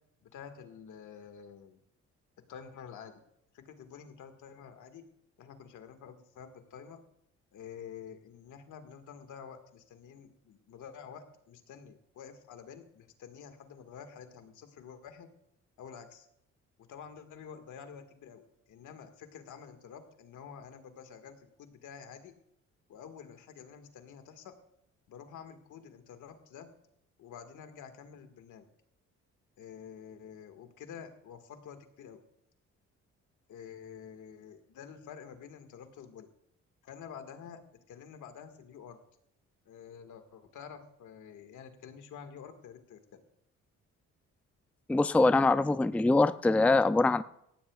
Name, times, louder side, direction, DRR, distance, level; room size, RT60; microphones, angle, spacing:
voice 1, 0.3-1.8 2.5-3.1 3.5-5.0 5.4-7.0 7.5-15.3 15.8-16.3 16.9-22.3 22.9-24.5 25.1-26.7 27.2-28.7 29.6-32.2 33.5-36.3 36.8-37.6 37.9-39.0 39.7-43.2, left 7 dB, 80° left, 6 dB, 1.9 m, -49 dB
voice 2, 44.9-47.2, left 2 dB, 5° left, 13 dB, 0.4 m, -24 dB
19.0 x 15.5 x 2.4 m, 0.76 s
cardioid pair, 90°, 30 cm